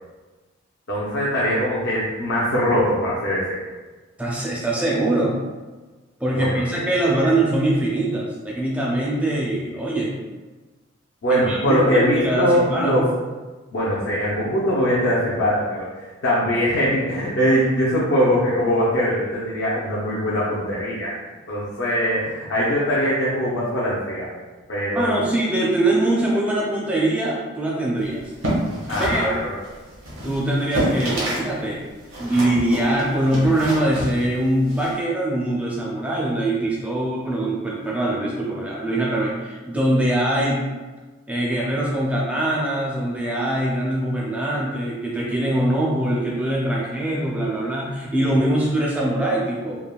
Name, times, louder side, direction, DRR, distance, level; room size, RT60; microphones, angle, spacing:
voice 1, 0.9-3.6 6.3-6.8 11.2-13.0 13.7-21.1 21.5-24.3 24.7-25.3 28.9-29.5, equal, 65° left, -8 dB, 0.5 m, -22 dB
voice 2, 4.2-5.4 6.2-10.1 11.3-13.1 25.0-28.2 29.0-29.3 30.2-31.8 32.2-40.6 41.3-49.8, right 1 dB, 5° right, -4 dB, 0.4 m, -22 dB
sound 1, 28.2-31.5 31.8-34.9, right 1 dB, 75° right, 0.9 m, -28 dB
3.3 x 2.1 x 2.3 m, 1.3 s
head